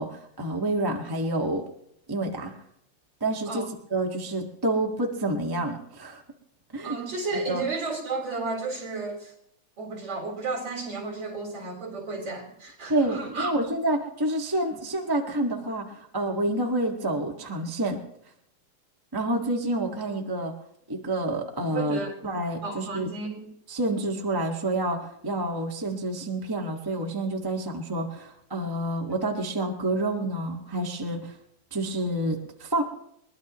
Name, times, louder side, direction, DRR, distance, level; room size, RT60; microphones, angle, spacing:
voice 1, 0.0-1.6 2.1-2.5 3.2-3.6 3.9-6.2 6.7-7.0 7.5-7.6 12.9-18.0 19.1-20.5 20.9-23.1 23.7-31.3 31.7-32.8, right 1 dB, 15° right, 0 dB, 0.9 m, -28 dB
voice 2, 6.8-9.3 9.8-13.5 21.6-22.2 22.6-23.5, right 3 dB, 40° right, 1 dB, 4.7 m, -33 dB
22.0 x 21.5 x 3.1 m, 0.73 s
omnidirectional pair, 3.4 m